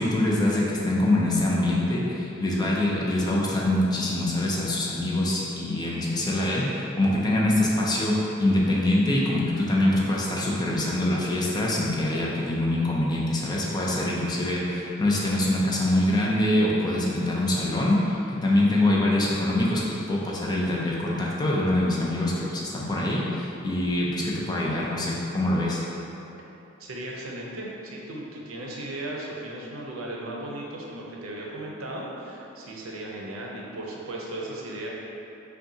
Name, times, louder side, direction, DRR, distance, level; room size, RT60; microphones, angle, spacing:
voice 1, 0.0-25.8, left 1 dB, 20° left, -4 dB, 0.5 m, -24 dB
voice 2, 26.8-34.9, right 1 dB, 85° right, -3 dB, 0.6 m, -36 dB
5.4 x 2.3 x 2.7 m, 2.9 s
head